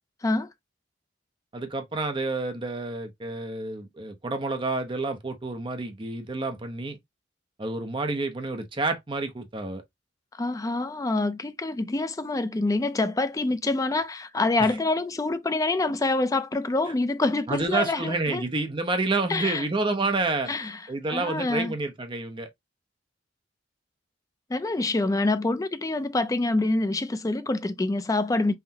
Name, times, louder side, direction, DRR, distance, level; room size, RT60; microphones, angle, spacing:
voice 1, 1.5-7.0 7.6-9.8 14.6-14.8 16.9-17.0 17.5-22.5, right 3 dB, 25° right, 0.6 m, -29 dB
voice 2, 10.4-18.4 19.3-19.6 20.5-20.8 21.1-21.7 24.5-28.5, left 2 dB, 20° left, 0.4 m, -26 dB
5.6 x 2.1 x 2.7 m
head